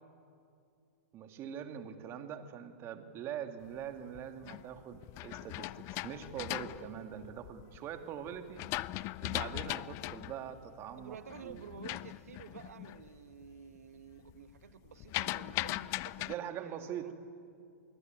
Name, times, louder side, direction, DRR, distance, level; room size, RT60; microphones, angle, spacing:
voice 1, 1.1-8.7 9.2-11.2 11.4-11.6 16.3-17.1, right 9 dB, 30° right, 2.4 m, -43 dB
sound 1, 3.9-7.8 8.3-13.1 13.4-13.9 14.1-16.3, left 19 dB, 35° left, 0.6 m, -39 dB
voice 2, 11.0-17.1, right 8 dB, 75° right, 1.5 m, -51 dB
26.0 x 22.0 x 9.2 m
hypercardioid pair, 120°, 8 cm